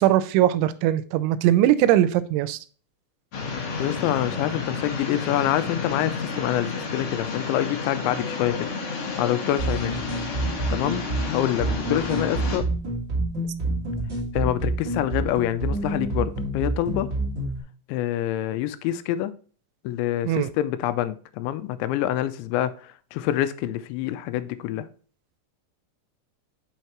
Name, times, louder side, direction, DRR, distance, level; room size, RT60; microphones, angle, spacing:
voice 1, 0.0-2.6 20.3-20.5, right 13 dB, 85° right, 3.0 m, -20 dB
sound 1, 3.3-12.6, left 4 dB, 65° left, 1.5 m, -31 dB
voice 2, 3.8-8.7 9.2-9.9 10.7-12.7 14.3-17.1 17.9-19.3 19.8-24.9, left 12 dB, 85° left, 2.8 m, -26 dB
sound 2, 9.6-17.6, right 2 dB, 70° right, 1.1 m, -28 dB
7.7 x 5.7 x 2.9 m
omnidirectional pair, 5.3 m